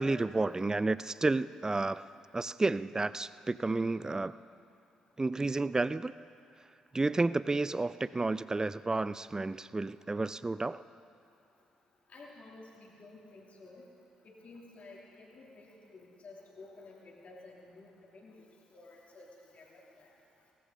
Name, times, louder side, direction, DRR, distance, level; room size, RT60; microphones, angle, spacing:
voice 1, 0.0-2.0 2.3-4.3 5.2-6.1 6.9-10.8, right 3 dB, 20° right, 17 dB, 0.4 m, -31 dB
voice 2, 12.1-13.9 14.2-18.5 18.7-20.1, left 3 dB, 45° left, -2 dB, 3.1 m, -53 dB
18.0 x 14.0 x 4.0 m, 2.6 s
figure-of-eight pair, 40°, 3 cm